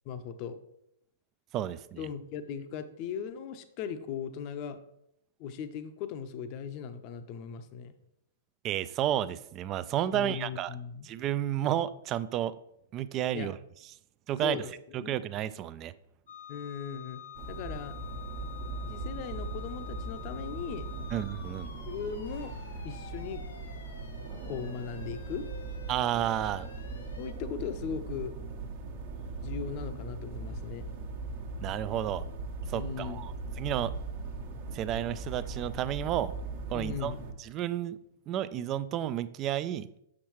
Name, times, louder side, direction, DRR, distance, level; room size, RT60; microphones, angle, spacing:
voice 1, 0.1-0.6 2.0-4.8 5.4-7.9 10.1-11.1 13.3-13.5 14.4-15.2 16.5-17.9 18.8-20.9 21.9-22.5 22.8-23.7 24.5-25.5 27.2-28.4 29.4-30.8 32.7-33.2 36.7-37.2, left 7 dB, 40° left, 10 dB, 0.6 m, -38 dB
voice 2, 1.5-2.0 8.6-10.7 11.0-12.6 12.9-13.6 14.3-14.6 14.9-15.9 21.1-21.7 25.9-26.7 31.6-32.3 32.7-33.3 33.6-33.9 34.7-36.3 36.7-38.0 38.3-39.9, right 11 dB, 30° right, 16 dB, 0.4 m, -31 dB
sound 1, 16.3-27.3, left 8 dB, 70° left, 0.9 m, -48 dB
sound 2, 17.3-37.3, right 3 dB, 55° right, 1.2 m, -39 dB
7.2 x 6.2 x 3.1 m, 0.77 s
hypercardioid pair, 115°, 0 cm